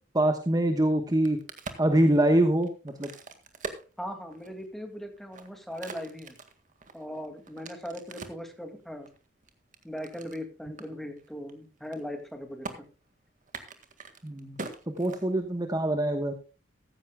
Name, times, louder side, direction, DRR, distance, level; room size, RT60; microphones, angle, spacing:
voice 1, 0.1-1.4 1.8-3.1 14.2-14.6 15.0-16.3, right 1 dB, 20° right, 6 dB, 1.1 m, -24 dB
Crack, 1.0-4.7 5.2-8.5 9.1-10.4 10.8-10.9 11.2-11.5 11.8-12.3 12.6-12.8 13.4-15.7, right 3 dB, 45° right, 1.8 m, -43 dB
voice 2, 4.0-6.3 6.9-9.1 9.8-12.8, equal, ahead, 5 dB, 2.2 m, -39 dB
15.0 x 14.5 x 2.3 m, 0.34 s
head